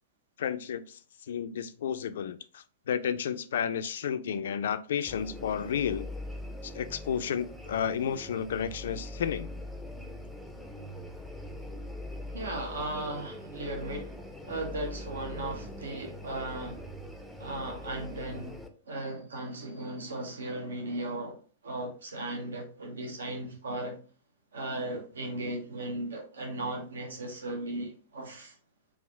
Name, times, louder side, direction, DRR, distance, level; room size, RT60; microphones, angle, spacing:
voice 1, 0.4-0.8 1.3-6.1 6.6-9.5, left 8 dB, 60° left, 0.3 m, -32 dB
sound 1, 5.1-18.7, left 1 dB, ahead, 0.5 m, -42 dB
voice 2, 12.3-16.9 17.4-18.6 18.9-24.0 24.5-28.6, right 2 dB, 70° right, 0.8 m, -37 dB
3.5 x 2.4 x 3.3 m
figure-of-eight pair, 100°, 0 cm